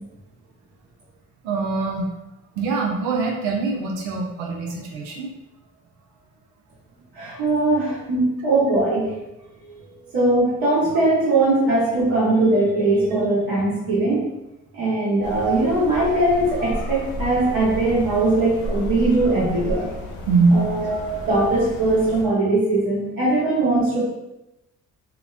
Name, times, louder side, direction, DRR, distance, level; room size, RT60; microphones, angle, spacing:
voice 1, 1.4-2.1 2.6-5.3 20.3-20.7, right 4 dB, 90° right, -1 dB, 0.5 m, -22 dB
voice 2, 7.1-9.1 9.6-9.8 10.1-14.3 14.7-19.9 20.5-24.0, right 2 dB, 65° right, -11 dB, 1.2 m, -20 dB
sound 1, 15.2-22.2, equal, 70° left, 0.7 m, -32 dB
2.8 x 2.1 x 2.4 m, 0.92 s
supercardioid pair, 50°, 37 cm